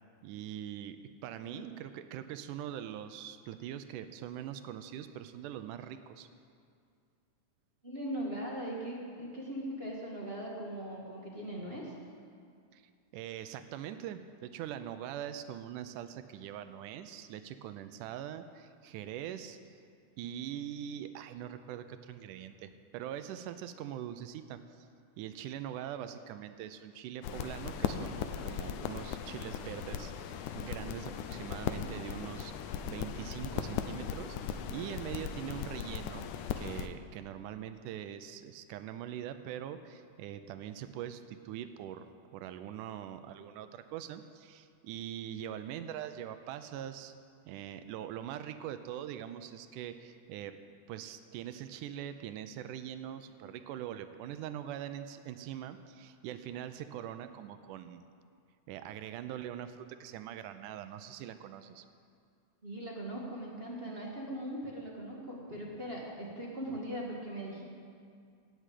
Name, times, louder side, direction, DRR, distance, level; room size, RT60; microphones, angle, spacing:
voice 1, 0.2-1.0 1.2-6.3 12.7-12.8 13.1-19.6 20.2-24.9 25.2-36.3 36.6-42.1 42.3-47.1 47.5-50.6 50.9-58.1 58.7-61.9, right 10 dB, 90° right, 10 dB, 2.2 m, -42 dB
voice 2, 7.8-11.9 62.6-67.6, right 1 dB, 30° right, -3 dB, 1.2 m, -40 dB
sound 1, 27.2-36.9, left 8 dB, 90° left, 2.2 m, -38 dB
17.5 x 6.2 x 8.4 m, 2.3 s
omnidirectional pair, 3.6 m